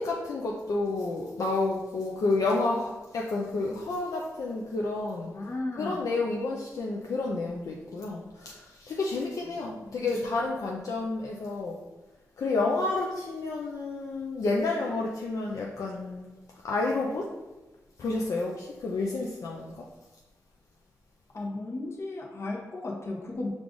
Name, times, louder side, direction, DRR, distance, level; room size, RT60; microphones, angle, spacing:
voice 1, 0.0-5.3 5.8-11.8 12.4-16.3 16.6-17.3 18.0-19.9, left 3 dB, 70° left, -2 dB, 0.5 m, -30 dB
voice 2, 5.3-6.0 9.9-10.0 21.3-23.5, left 2 dB, 50° left, -1 dB, 0.9 m, -35 dB
4.8 x 2.4 x 3.7 m, 1.1 s
cardioid pair, 85°, 6 cm